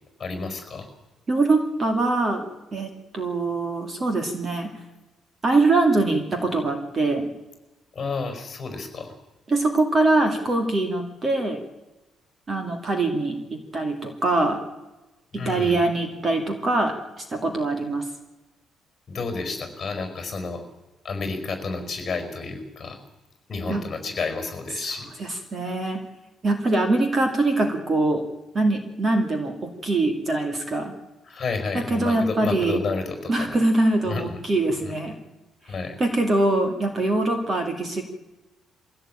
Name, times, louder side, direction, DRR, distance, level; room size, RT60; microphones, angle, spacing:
voice 1, 0.2-0.9 7.9-9.1 15.3-15.8 19.1-20.6 21.0-23.0 23.5-25.1 31.2-33.6 34.1-34.4 34.8-34.9 35.6-36.0, left 4 dB, 30° left, 7 dB, 5.1 m, -31 dB
voice 2, 1.3-2.5 2.7-4.7 5.4-7.3 9.5-11.6 12.5-14.6 15.3-18.1 23.7-23.8 25.2-26.0 26.4-28.2 28.5-30.9 31.7-32.8 33.3-35.2 36.0-38.0, right 2 dB, 25° right, 5 dB, 2.4 m, -23 dB
22.5 x 16.5 x 8.9 m, 1.0 s
cardioid pair, 160°, 0 cm